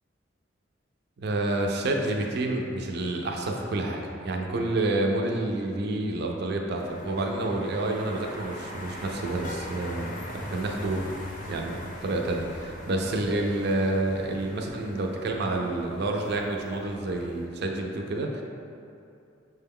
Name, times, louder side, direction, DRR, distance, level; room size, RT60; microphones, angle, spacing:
voice 1, 1.2-11.1 11.5-18.4, right 2 dB, 60° right, 1 dB, 0.5 m, -29 dB
sound 1, 6.8-17.5, left 1 dB, 45° left, 0.5 m, -41 dB
6.1 x 2.2 x 3.5 m, 2.6 s
head